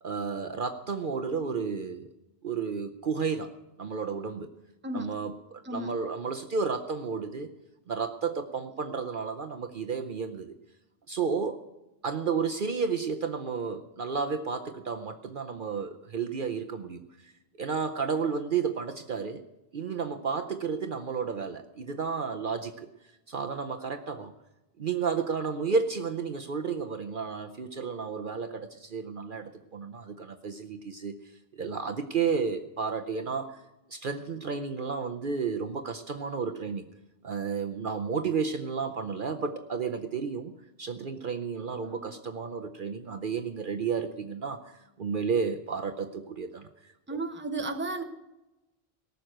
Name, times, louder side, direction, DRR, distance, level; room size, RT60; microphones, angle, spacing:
voice 1, 0.0-2.1 2.4-3.5 3.8-4.5 4.9-7.5 7.9-10.5 11.1-11.6 12.0-17.3 17.6-19.4 19.7-22.9 23.3-24.3 24.8-31.1 31.6-33.6 33.9-36.8 37.2-40.5 40.8-46.7, right 5 dB, 55° right, 6 dB, 0.8 m, -32 dB
voice 2, 5.6-6.0 41.8-42.2 47.1-48.0, right 2 dB, 10° right, 6 dB, 0.9 m, -34 dB
18.5 x 6.7 x 7.7 m, 0.97 s
omnidirectional pair, 1.1 m